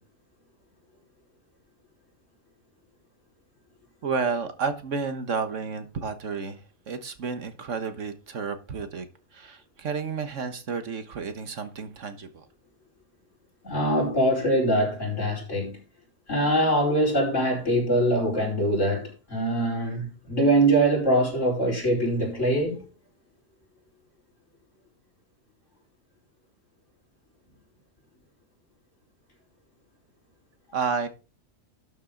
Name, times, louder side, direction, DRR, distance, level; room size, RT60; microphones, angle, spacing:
voice 1, 4.0-6.6 6.9-9.1 9.3-12.5 30.7-31.1, right 5 dB, 65° right, 1.6 m, -31 dB
voice 2, 13.6-15.8 16.3-22.8, right 1 dB, 65° left, 5.1 m, -23 dB
12.0 x 7.4 x 3.9 m
omnidirectional pair, 1.4 m